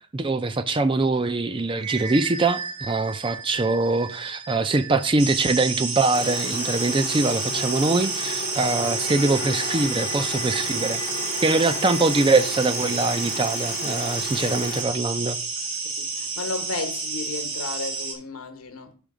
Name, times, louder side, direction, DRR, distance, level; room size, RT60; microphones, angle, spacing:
voice 1, 0.1-11.0 11.4-15.4, right 3 dB, 20° right, 0.4 m, -23 dB
sound 1, 1.3-6.0 8.8-12.8, right 6 dB, 85° right, 1.5 m, -38 dB
sound 2, 5.2-18.1, right 4 dB, 70° right, 2.9 m, -30 dB
sound 3, 6.1-14.8, left 5 dB, 35° left, 0.7 m, -34 dB
voice 2, 15.8-19.0, left 3 dB, 70° left, 1.1 m, -33 dB
5.6 x 5.1 x 6.1 m
head